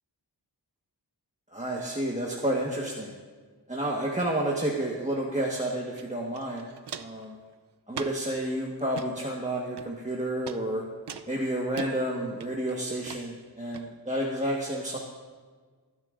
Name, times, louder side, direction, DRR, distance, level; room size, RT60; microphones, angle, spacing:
voice 1, 1.5-3.1 3.7-6.7 7.0-7.3 7.9-10.8 11.3-15.0, right 1 dB, 15° right, -3 dB, 1.3 m, -30 dB
Walk footsteps, 6.0-6.1 6.3-7.2 7.9-8.3 8.8-9.1 9.8-10.1 10.5-10.6 11.1-11.9 12.4-12.7 13.1-13.2 13.7-13.8, right 7 dB, 75° right, 0.6 m, -39 dB
19.5 x 10.5 x 2.5 m, 1.5 s
wide cardioid pair, 50°, 41 cm